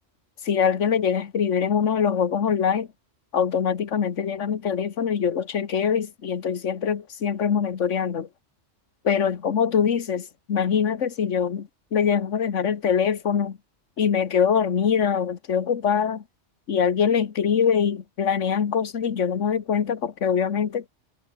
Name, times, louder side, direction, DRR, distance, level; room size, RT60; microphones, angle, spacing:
voice 1, 0.4-2.9 3.3-8.3 9.0-13.6 14.0-16.2 16.7-20.8, left 7 dB, 80° left, 1.6 m, -23 dB
omnidirectional pair, 1.2 m